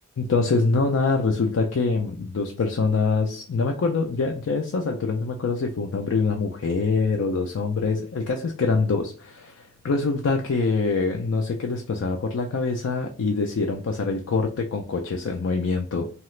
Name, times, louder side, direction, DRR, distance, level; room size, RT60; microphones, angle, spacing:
voice 1, 0.2-16.1, left 4 dB, 70° left, 3 dB, 0.4 m, -24 dB
2.8 x 2.4 x 3.1 m, 0.36 s
head